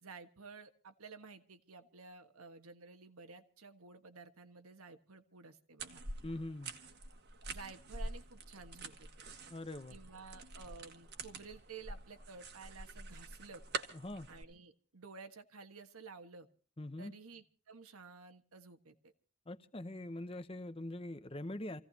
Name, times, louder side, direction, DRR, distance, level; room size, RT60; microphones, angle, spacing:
voice 1, 0.0-6.0 7.5-9.2 9.9-13.6 14.3-16.5 17.0-19.1, right 4 dB, 85° right, 7 dB, 1.5 m, -53 dB
sound 1, 5.8-14.4, right 3 dB, 50° right, 1.6 m, -46 dB
voice 2, 6.2-6.7 9.5-10.0 13.9-14.3 16.8-17.1 19.5-21.8, left 1 dB, 25° left, 12 dB, 0.8 m, -43 dB
28.0 x 16.5 x 2.8 m, 0.40 s
head